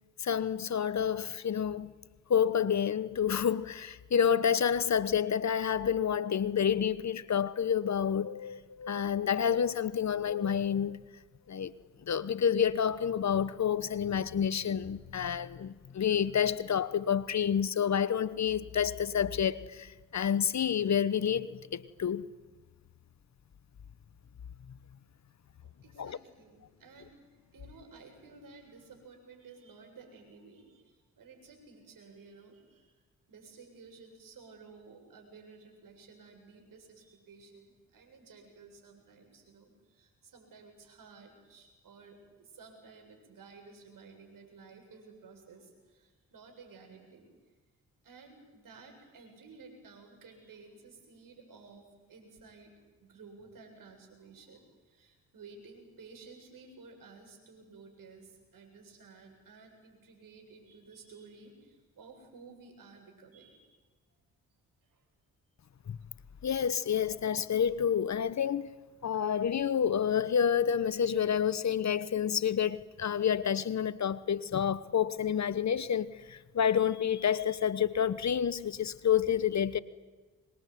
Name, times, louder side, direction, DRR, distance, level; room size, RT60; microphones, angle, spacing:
voice 1, 0.2-1.9 2.3-11.0 11.5-11.7 12.1-22.3 26.0-26.2 65.9-66.0 66.4-68.7 69.0-79.8, left 8 dB, 50° left, 1.1 m, -29 dB
voice 2, 25.6-32.9 33.3-47.5 48.0-52.7 53.0-63.8 64.8-65.0, right 4 dB, 60° right, 7.8 m, -54 dB
25.0 x 22.0 x 9.4 m
hypercardioid pair, 45°, 36 cm